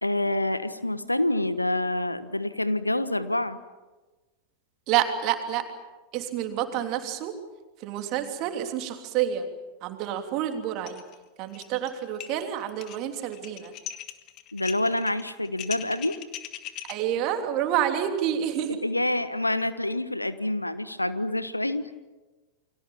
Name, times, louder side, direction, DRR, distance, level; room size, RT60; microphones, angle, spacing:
voice 1, 0.0-3.6 14.5-16.2 18.8-21.9, left 1 dB, 85° left, 14 dB, 1.2 m, -27 dB
voice 2, 4.9-5.6 6.1-7.3 7.8-9.5 9.8-11.0 11.4-13.7 16.9-18.8, right 10 dB, 40° right, 6 dB, 3.1 m, -28 dB
sound 1, 10.9-11.1 11.4-11.9 12.2-16.9, left 12 dB, 40° left, 1.9 m, -39 dB
29.5 x 23.5 x 7.3 m, 1.2 s
figure-of-eight pair, 90°, 0 cm